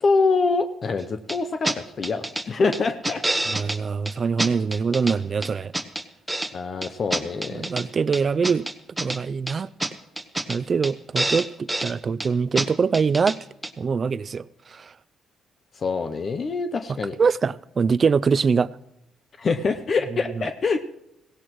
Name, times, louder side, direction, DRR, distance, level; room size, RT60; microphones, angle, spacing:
voice 1, 0.0-3.2 6.5-7.7 15.8-17.2 19.4-20.8, left 4 dB, 45° left, 0.7 m, -25 dB
sound 1, 1.3-1.4 1.6-1.8 2.0-2.4 2.7-3.8 4.1-4.2 4.4-5.2 5.4-6.5 6.8-7.8 8.1-9.2 9.5-9.6 9.8-9.9 10.2-10.6 10.8-10.9 11.2-11.9 12.2-12.3 12.6-12.7 12.9-13.4 13.6-13.7, right 1 dB, 10° right, 1.0 m, -27 dB
voice 2, 3.5-5.7 7.5-8.7 9.0-9.7 10.5-13.4 13.8-14.4 14.7-14.9 17.2-18.7, right 5 dB, 40° right, 0.4 m, -23 dB
17.0 x 16.5 x 3.1 m
cardioid pair, 90°, 0 cm